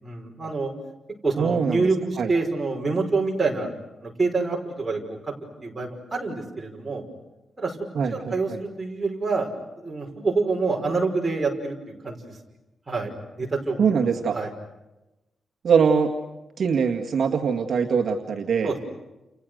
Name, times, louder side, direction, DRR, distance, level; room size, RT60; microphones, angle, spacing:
voice 1, 0.0-0.7 1.2-3.7 4.0-5.0 5.6-7.0 7.6-7.8 8.1-9.5 9.8-11.8 12.0-12.3 12.9-13.1 13.4-14.5 18.6-18.8, right 3 dB, 15° right, -1 dB, 5.7 m, -26 dB
voice 2, 1.4-1.8 2.2-2.3 8.0-8.6 13.8-14.4 15.6-16.1 16.6-18.7, right 6 dB, 50° right, 1 dB, 2.0 m, -22 dB
30.0 x 30.0 x 6.6 m, 0.99 s
wide cardioid pair, 180°, 0 cm